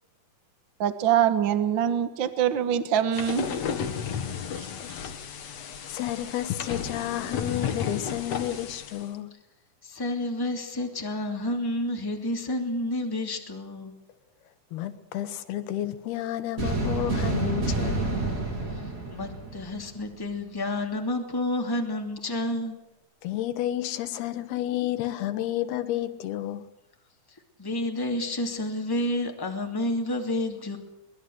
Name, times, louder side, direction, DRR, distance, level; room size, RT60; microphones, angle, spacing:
voice 1, 0.8-3.5, right 9 dB, 90° right, 1.0 m, -24 dB
sound 1, 3.1-9.0, left 7 dB, 50° left, 2.3 m, -33 dB
voice 2, 4.5-5.1 5.6-9.3 14.7-18.1 23.2-26.7, left 13 dB, 80° left, 3.3 m, -31 dB
voice 3, 9.8-13.9 18.7-22.8 27.6-30.8, left 1 dB, 5° left, 2.0 m, -30 dB
sound 2, 16.6-20.0, right 2 dB, 45° right, 9.4 m, -28 dB
23.5 x 20.5 x 8.0 m
omnidirectional pair, 4.4 m